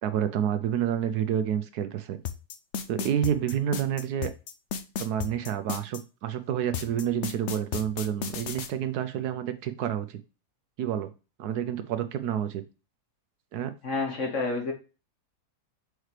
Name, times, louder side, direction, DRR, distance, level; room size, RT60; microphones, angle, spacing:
voice 1, 0.0-2.2 2.9-4.3 5.0-10.2 10.8-11.1 11.4-12.6 13.5-13.7, right 9 dB, 75° right, 10 dB, 1.1 m, -29 dB
sound 1, 2.2-6.0 6.7-8.7, left 7 dB, 70° left, 0.7 m, -33 dB
voice 2, 13.8-14.7, left 3 dB, 50° left, 3 dB, 1.4 m, -29 dB
6.6 x 4.5 x 3.2 m, 0.32 s
omnidirectional pair, 1.8 m